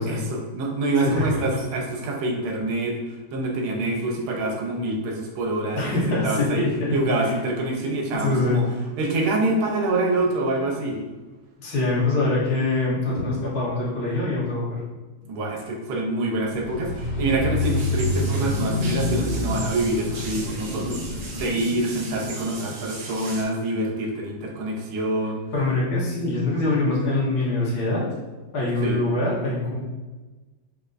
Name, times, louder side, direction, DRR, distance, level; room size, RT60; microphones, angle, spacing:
voice 1, 0.0-3.0 3.3-6.7 6.9-8.6 9.0-11.0 15.2-25.4 28.8-29.0, right 2 dB, 85° right, 0 dB, 1.6 m, -26 dB
voice 2, 1.0-1.6 5.7-7.4 8.2-8.6 11.6-14.8 25.5-28.0 28.5-29.8, left 2 dB, 90° left, -7 dB, 2.1 m, -24 dB
sound 1, 16.5-21.5, left 2 dB, 70° left, 0.6 m, -27 dB
sound 2, 17.6-23.4, right 2 dB, 60° right, 1.4 m, -36 dB
5.5 x 3.6 x 2.5 m, 1.2 s
omnidirectional pair, 2.2 m